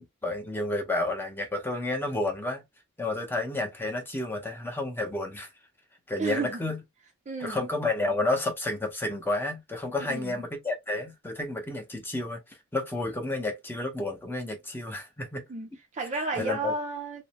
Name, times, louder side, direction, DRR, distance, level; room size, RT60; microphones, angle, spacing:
voice 1, 0.0-2.6 3.0-5.5 6.1-6.8 7.4-12.4 12.7-15.4 16.4-16.7, left 2 dB, 10° left, 0.7 m, -31 dB
voice 2, 6.2-6.6 7.3-7.6 10.0-10.4 15.5-17.2, right 3 dB, 35° right, 0.4 m, -33 dB
2.5 x 2.1 x 2.8 m
head